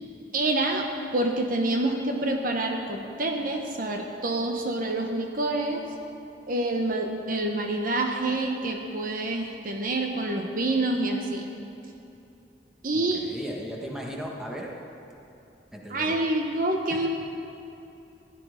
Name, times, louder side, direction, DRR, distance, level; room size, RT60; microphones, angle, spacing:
voice 1, 0.3-0.9 1.1-5.8 6.5-11.5 12.8-13.2 15.9-17.1, right 2 dB, 50° right, 3 dB, 0.9 m, -27 dB
voice 2, 12.9-14.7 15.7-16.2 16.9-17.1, equal, 5° right, -2 dB, 1.5 m, -37 dB
16.5 x 11.0 x 5.1 m, 2.9 s
head